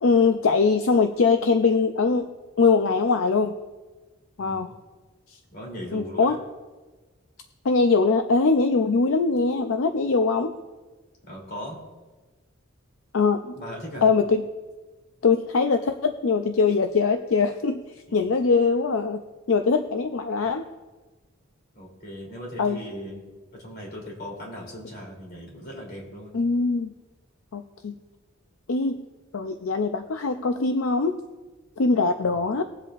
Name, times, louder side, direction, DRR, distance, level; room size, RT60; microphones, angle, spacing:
voice 1, 0.0-2.3 2.6-3.6 4.4-4.7 5.9-6.4 7.6-10.5 13.1-13.5 14.0-14.4 15.2-17.8 18.1-19.2 19.5-20.6 22.6-22.8 26.3-26.9 27.5-27.9 28.7-29.0 29.3-31.2 31.8-32.6, left 4 dB, 75° left, 7 dB, 0.5 m, -22 dB
voice 2, 5.5-6.4 11.3-11.8 13.5-14.1 18.1-18.3 21.7-26.3 32.2-32.4, equal, 50° left, -2 dB, 3.1 m, -38 dB
20.5 x 7.6 x 2.5 m, 1.3 s
head